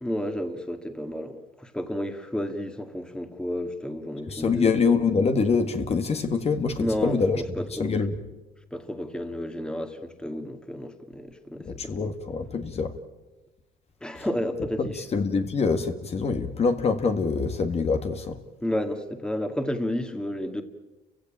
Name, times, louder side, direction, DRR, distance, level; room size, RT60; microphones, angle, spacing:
voice 1, 0.0-4.7 6.8-8.0 8.7-12.1 14.0-15.0 18.6-20.6, left 1 dB, 5° left, 2.0 m, -31 dB
voice 2, 4.3-7.4 7.8-8.1 11.7-12.9 14.8-18.4, left 4 dB, 40° left, 1.8 m, -25 dB
29.5 x 16.5 x 8.8 m
cardioid pair, 110°, 17 cm